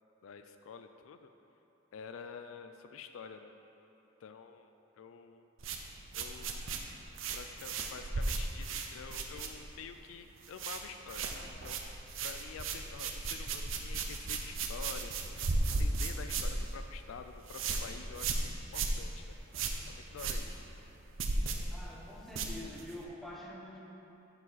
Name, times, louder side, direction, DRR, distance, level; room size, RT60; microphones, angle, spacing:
voice 1, 0.2-1.3 1.9-3.5 4.2-4.7 5.0-5.4 6.1-6.7 7.3-11.8 12.2-19.4 19.9-20.6, left 6 dB, 80° left, 8 dB, 0.4 m, -48 dB
sound 1, 5.6-9.9 10.2-10.8 11.1-23.0, right 3 dB, 70° right, 0.6 m, -36 dB
voice 2, 21.7-23.8, left 1 dB, ahead, -4 dB, 1.0 m, -46 dB
11.0 x 4.9 x 4.0 m, 2.9 s
head